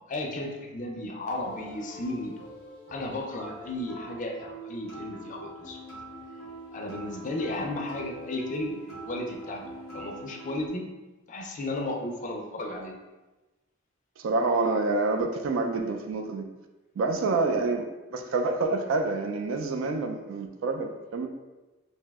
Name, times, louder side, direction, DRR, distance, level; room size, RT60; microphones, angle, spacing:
voice 1, 0.0-2.3 2.9-5.8 6.7-9.6 9.9-10.9 11.3-13.0, left 1 dB, 40° left, 1 dB, 0.4 m, -34 dB
sound 1, 1.3-10.7, right 1 dB, 85° right, 1.1 m, -44 dB
voice 2, 14.2-16.5 17.0-21.3, right 3 dB, 70° right, 6 dB, 0.3 m, -27 dB
2.6 x 2.0 x 3.4 m, 1.1 s
head